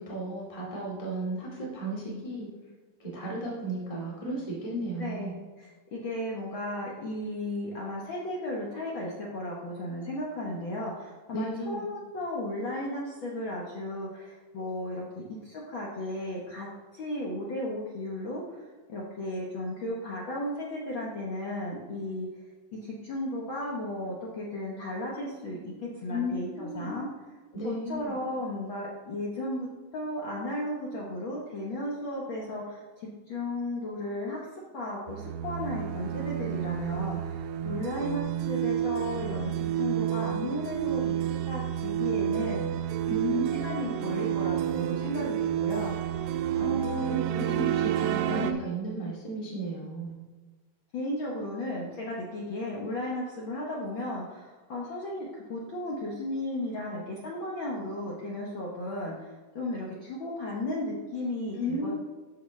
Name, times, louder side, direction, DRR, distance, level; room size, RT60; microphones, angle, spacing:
voice 1, 0.0-2.5 3.0-5.3 11.3-11.8 26.0-26.9 27.5-28.2 43.1-43.9 46.5-50.2 61.5-62.0, right 1 dB, 10° left, -5 dB, 1.8 m, -34 dB
voice 2, 5.0-16.7 16.9-22.3 22.8-27.1 27.6-29.7 29.9-34.5 34.7-43.0 43.3-46.1 46.6-47.2 48.3-48.7 50.9-62.0, left 1 dB, 80° left, -3 dB, 1.1 m, -35 dB
sound 1, 35.1-48.5, right 11 dB, 85° right, 1.7 m, -30 dB
14.0 x 4.9 x 3.2 m, 1.3 s
omnidirectional pair, 3.8 m